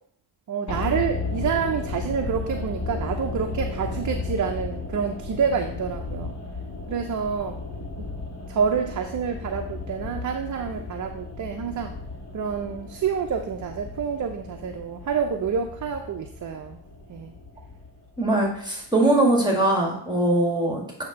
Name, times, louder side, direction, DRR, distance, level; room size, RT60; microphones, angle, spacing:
voice 1, 0.5-6.3 6.9-7.6 8.5-11.9 12.3-16.8 17.1-17.3, right 6 dB, 40° right, 4 dB, 0.7 m, -28 dB
sound 1, 0.7-18.9 19.1-19.2, left 3 dB, 35° left, 2.0 m, -34 dB
voice 2, 18.2-21.0, right 1 dB, 10° right, -1 dB, 1.9 m, -21 dB
8.4 x 2.9 x 5.3 m, 0.64 s
cardioid pair, 70°, 45 cm